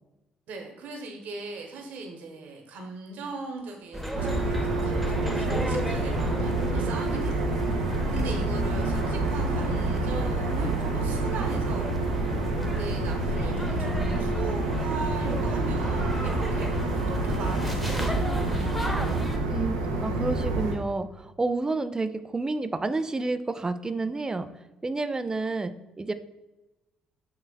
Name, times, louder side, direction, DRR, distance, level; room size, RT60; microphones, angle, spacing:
voice 1, 0.5-7.5 8.1-12.4 12.8-18.0 18.4-19.1, right 3 dB, 60° right, 2 dB, 1.0 m, -39 dB
sound 1, 3.9-19.4, equal, 5° left, 0.8 m, -34 dB
sound 2, 4.1-20.7, right 2 dB, 80° right, 0.7 m, -28 dB
voice 2, 8.4-9.1 19.5-24.5 24.8-26.1, right 3 dB, 20° right, 11 dB, 0.4 m, -30 dB
7.2 x 3.1 x 2.3 m, 1.0 s
figure-of-eight pair, 45°, 3 cm